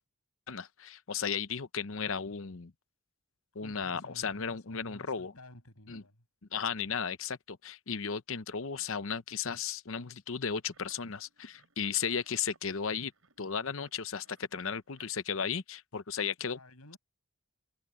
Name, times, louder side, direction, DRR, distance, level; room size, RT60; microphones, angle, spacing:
voice 1, 0.5-2.7 3.5-5.3 5.9-6.0 6.5-13.1 13.4-16.6, left 6 dB, 65° left, 0.8 m, -35 dB
voice 2, 3.6-6.3 16.4-17.0, left 1 dB, 85° left, 7.4 m, -53 dB
sound 1, 10.1-10.2 10.6-15.1, right 4 dB, 70° right, 6.7 m, -66 dB
head